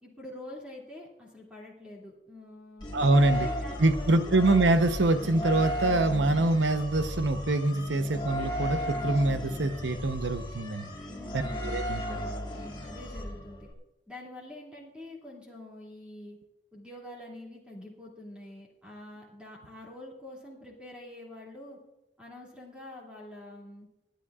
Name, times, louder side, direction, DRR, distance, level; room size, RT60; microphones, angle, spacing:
voice 1, 0.0-4.3 11.1-13.7 14.1-16.4 16.7-21.8 22.2-23.9, left 1 dB, 5° right, -4 dB, 2.5 m, -46 dB
sound 1, 2.8-13.7, equal, 25° left, 1.7 m, -35 dB
voice 2, 2.9-3.5 3.8-10.9 11.3-12.3, right 2 dB, 85° right, 9 dB, 0.9 m, -25 dB
24.5 x 10.0 x 2.4 m, 0.95 s
head